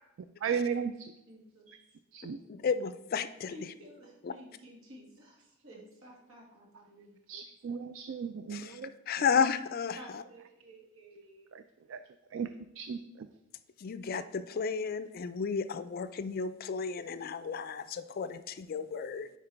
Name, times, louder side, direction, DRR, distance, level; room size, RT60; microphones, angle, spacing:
voice 1, 0.4-0.9 2.1-2.4 7.3-8.9 11.5-11.6 11.9-12.0 12.3-12.5 12.8-13.3, right 6 dB, 65° right, 10 dB, 0.3 m, -35 dB
voice 2, 1.3-1.8 3.5-5.4 5.6-7.2 10.0-11.5, equal, 80° right, -2 dB, 2.2 m, -52 dB
voice 3, 2.2-3.7 4.2-4.3 8.5-8.8 9.1-10.2 13.8-19.3, left 6 dB, 45° left, 13 dB, 0.3 m, -33 dB
9.5 x 4.6 x 3.4 m, 0.90 s
head